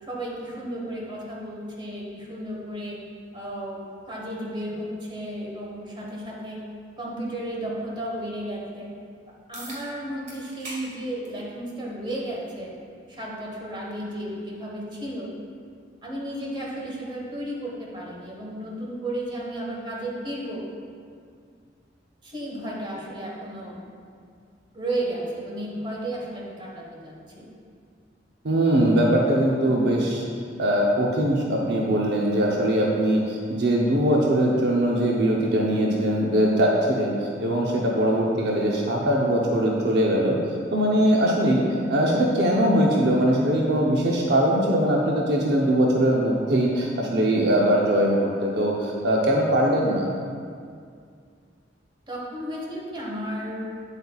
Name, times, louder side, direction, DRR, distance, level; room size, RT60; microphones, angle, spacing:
voice 1, 0.0-3.0 3.3-6.6 7.0-8.9 9.5-12.8 13.1-15.3 16.0-20.6 22.2-23.8 24.7-27.5 52.1-53.7, right 1 dB, 25° right, -4 dB, 1.3 m, -33 dB
sound 1, 9.5-9.8 10.3-10.8 11.2-11.4 12.5-12.6 17.5-17.6, right 1 dB, 40° right, 1.8 m, -40 dB
voice 2, 28.4-30.2 30.6-40.4 40.7-50.1, right 1 dB, 65° right, -2 dB, 0.7 m, -21 dB
8.9 x 7.9 x 2.4 m, 2.2 s
head